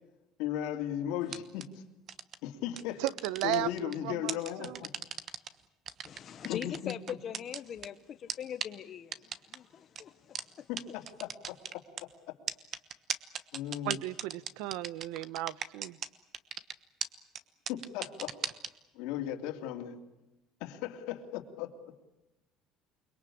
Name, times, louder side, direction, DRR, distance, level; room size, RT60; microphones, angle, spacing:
voice 1, 0.4-1.7 2.4-3.0 3.4-4.9 6.4-6.9 10.7-11.8 13.5-14.0 17.7-18.4 18.9-20.0 20.6-21.7, left 11 dB, 75° left, 3.0 m, -36 dB
sound 1, 1.3-1.6 2.1-2.4 2.8-3.9 4.3-5.5 5.9-7.9 8.3-8.4 8.6-8.7 9.1-9.6 10.0-10.1 10.4-10.5 10.8-10.9 11.1-12.0 12.5-16.1 16.3-16.7 17.0-17.1 17.4-17.5 17.7-18.7, right 8 dB, 30° right, 1.2 m, -36 dB
voice 2, 3.0-4.8 13.8-16.0, right 16 dB, 75° right, 0.9 m, -35 dB
voice 3, 6.1-10.7, left 9 dB, 30° left, 1.0 m, -42 dB
29.0 x 21.5 x 8.6 m
cardioid pair, 170°, 0 cm